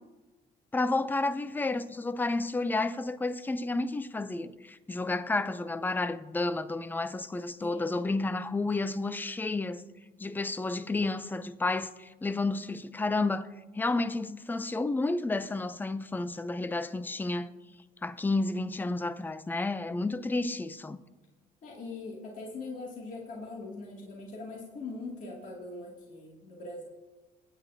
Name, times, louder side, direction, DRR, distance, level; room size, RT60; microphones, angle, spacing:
voice 1, 0.7-9.8 10.2-13.5 13.7-17.5 18.0-21.0, left 2 dB, 10° left, 0.5 m, -31 dB
voice 2, 7.6-8.0 21.6-26.8, left 3 dB, 50° left, 2.5 m, -41 dB
23.5 x 9.5 x 2.8 m
cardioid pair, 110°, 17 cm